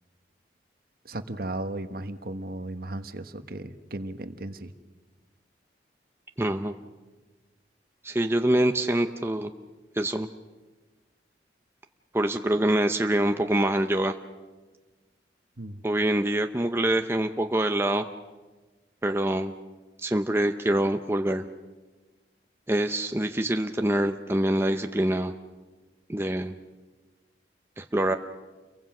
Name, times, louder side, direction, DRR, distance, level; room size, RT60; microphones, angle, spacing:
voice 1, 1.0-4.7 15.6-15.8, right 1 dB, 55° right, 9 dB, 1.3 m, -35 dB
voice 2, 6.4-6.7 8.0-9.5 9.9-10.3 12.1-14.2 15.8-18.1 19.0-19.5 20.0-21.4 22.7-25.3 26.1-26.6 27.8-28.2, right 1 dB, 15° right, 6 dB, 0.7 m, -25 dB
29.0 x 23.0 x 6.1 m, 1.3 s
head